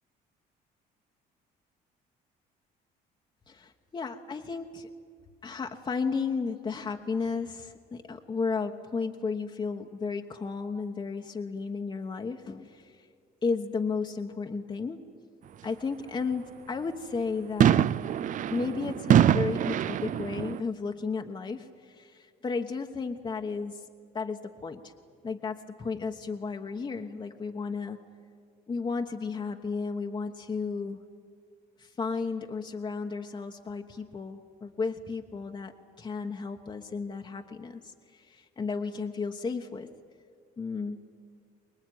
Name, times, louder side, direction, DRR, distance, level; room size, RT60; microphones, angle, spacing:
voice 1, 3.5-4.9 5.4-13.1 13.4-15.0 15.6-17.9 18.5-23.9 24.1-24.9 25.2-28.0 28.7-31.0 31.8-39.9 40.6-41.0, left 4 dB, 30° left, 4 dB, 1.2 m, -33 dB
sound 1, 17.6-20.6, right 10 dB, 50° right, 0.5 m, -24 dB
24.5 x 20.5 x 9.4 m, 2.2 s
cardioid pair, 110°, 17 cm